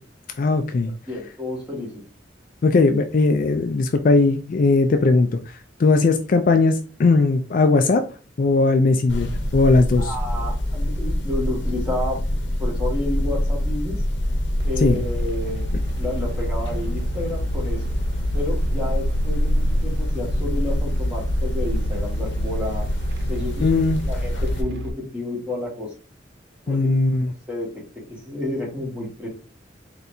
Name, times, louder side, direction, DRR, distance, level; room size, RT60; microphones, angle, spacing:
voice 1, 0.4-0.9 2.6-5.3 5.8-8.0 8.4-10.1 14.8-15.0 23.6-24.0 26.7-27.3, left 3 dB, 45° left, 7 dB, 0.3 m, -18 dB
voice 2, 1.1-2.0 10.0-14.0 14.6-15.7 16.0-17.8 18.3-22.9 23.3-23.7 24.0-25.9 26.7-26.8 27.5-27.7 28.1-29.3, left 2 dB, 5° right, -4 dB, 1.6 m, -30 dB
sound 1, 9.1-24.6, left 1 dB, 70° left, 0.8 m, -26 dB
sound 2, 14.6-24.9, right 1 dB, 60° right, 0.4 m, -29 dB
4.1 x 3.3 x 2.7 m, 0.37 s
head